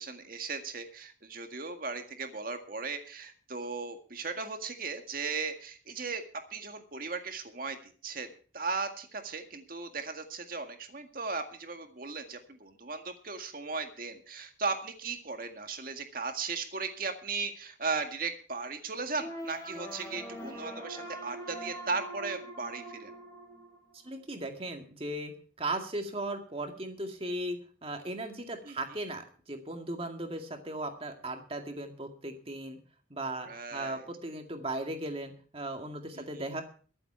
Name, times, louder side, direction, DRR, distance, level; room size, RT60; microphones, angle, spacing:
voice 1, 0.0-6.2 6.5-8.3 8.5-23.1 28.7-28.8 33.5-34.0 36.2-36.4, right 4 dB, 45° right, 6 dB, 1.9 m, -37 dB
sound 1, 19.2-24.2, right 1 dB, 15° left, 3.8 m, -43 dB
voice 2, 24.0-32.8 33.1-36.6, right 1 dB, 30° right, 5 dB, 2.0 m, -37 dB
23.0 x 7.8 x 4.5 m, 0.42 s
head